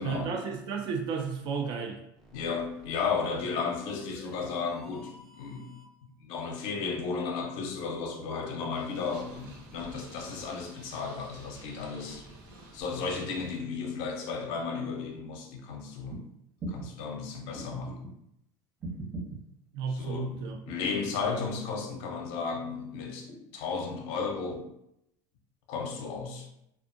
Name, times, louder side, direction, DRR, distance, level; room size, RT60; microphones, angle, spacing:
voice 1, 0.0-2.0 19.7-20.6, right 5 dB, 50° right, 3 dB, 0.5 m, -33 dB
sound 1, 2.1-6.1, left 1 dB, ahead, 0.6 m, -52 dB
voice 2, 2.3-5.7 6.0-12.2 12.7-16.2 16.7-18.0 19.9-20.4 20.7-24.6 25.7-26.5, left 5 dB, 65° left, 3 dB, 0.6 m, -34 dB
Purr, 8.7-13.6, right 2 dB, 90° right, 0.8 m, -50 dB
sound 2, 16.1-16.2 16.6-16.9 17.5-18.1 18.8-19.4 20.3-20.9 21.3-21.9 22.9-23.6 24.5-24.6, right 2 dB, 30° right, 1.0 m, -40 dB
2.6 x 2.3 x 2.5 m, 0.78 s
supercardioid pair, 120°, 10 cm